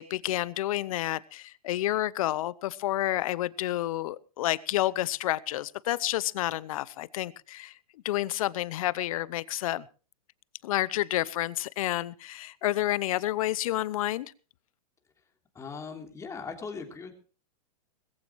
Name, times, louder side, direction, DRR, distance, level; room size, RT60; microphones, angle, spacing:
voice 1, 0.0-7.7 8.0-9.9 10.6-14.3, left 15 dB, 60° left, 21 dB, 0.8 m, -29 dB
voice 2, 15.5-17.1, left 5 dB, 15° left, 4 dB, 3.2 m, -39 dB
20.5 x 15.0 x 3.1 m, 0.35 s
hypercardioid pair, 130°, 20 cm